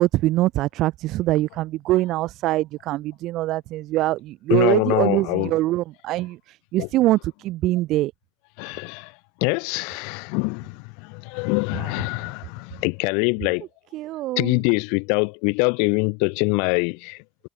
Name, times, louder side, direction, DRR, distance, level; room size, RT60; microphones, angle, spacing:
voice 1, 0.0-8.1 11.7-11.9 13.9-14.6, right 16 dB, 60° right, 1.0 m, -23 dB
voice 2, 4.5-5.5 6.8-6.9 8.6-9.1 9.4-13.7 14.4-17.2, left 37 dB, 70° left, 1.2 m, -24 dB
hypercardioid pair, 60°, 0 cm